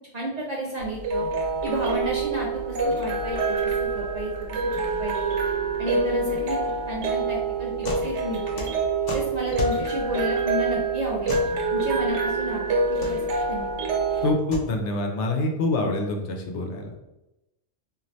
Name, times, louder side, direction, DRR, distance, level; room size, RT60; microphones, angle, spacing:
voice 1, 0.1-1.3 1.6-4.3 4.6-4.7 5.0-5.2 5.8-6.6 6.9-8.7 9.1-11.4 11.7-13.2 13.5-13.7, equal, 55° right, -3 dB, 0.4 m, -31 dB
sound 1, 0.8-14.3, right 4 dB, 80° right, 0.9 m, -26 dB
sound 2, 7.8-8.1 8.4-9.8 11.3-11.5 12.8-13.1 14.3-14.7, left 2 dB, 50° left, 0.6 m, -31 dB
voice 2, 14.2-16.9, left 2 dB, 80° left, 3 dB, 0.9 m, -26 dB
2.6 x 2.5 x 3.0 m, 0.96 s
omnidirectional pair, 1.2 m